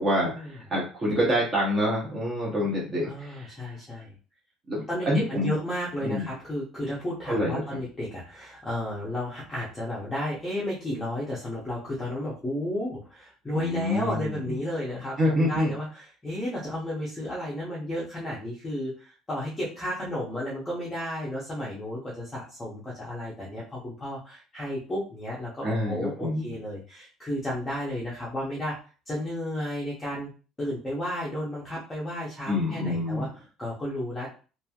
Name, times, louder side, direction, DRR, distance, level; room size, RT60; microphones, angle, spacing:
voice 1, 0.0-3.5 4.7-5.6 6.0-6.3 7.3-7.6 13.5-14.2 15.2-15.7 25.6-26.5 32.5-33.3, left 1 dB, 20° right, -4 dB, 0.7 m, -26 dB
voice 2, 3.0-4.2 4.9-28.8 29.1-30.3 30.6-34.3, left 1 dB, 10° left, -7 dB, 0.7 m, -33 dB
3.0 x 2.5 x 2.3 m, 0.36 s
cardioid pair, 175°, 0 cm